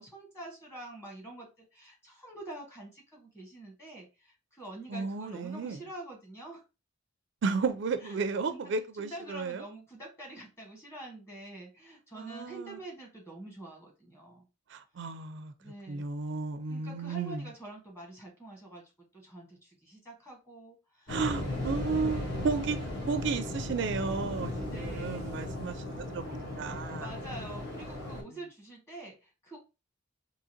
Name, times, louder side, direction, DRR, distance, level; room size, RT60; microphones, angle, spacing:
voice 1, 0.0-6.6 8.0-8.2 8.5-8.7 9.0-14.5 15.6-16.0 16.7-21.7 21.9-22.5 24.7-25.5 26.9-29.6, right 2 dB, 15° left, 1.2 m, -46 dB
voice 2, 4.9-5.8 7.4-9.6 12.2-12.8 14.7-15.5 15.9-17.4 21.1-22.8 23.1-27.1, right 4 dB, 60° right, 0.4 m, -33 dB
Waves surf, 21.1-28.2, left 1 dB, 60° left, 1.4 m, -36 dB
3.8 x 2.8 x 2.7 m
head